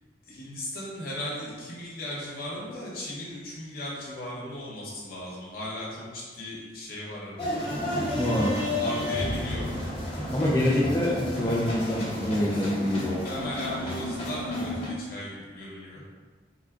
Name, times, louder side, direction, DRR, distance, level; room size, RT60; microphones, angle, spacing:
voice 1, 0.3-7.7 8.4-9.8 12.8-16.0, left 1 dB, 55° left, -6 dB, 1.0 m, -37 dB
sound 1, 7.4-14.9, left 1 dB, 30° left, 0.9 m, -32 dB
voice 2, 8.1-8.5 8.8-8.9 10.3-13.2, left 1 dB, 15° left, -7 dB, 0.4 m, -25 dB
sound 2, 9.1-12.3 12.6-12.8, equal, 50° right, 0.7 m, -39 dB
3.7 x 2.3 x 3.7 m, 1.5 s
head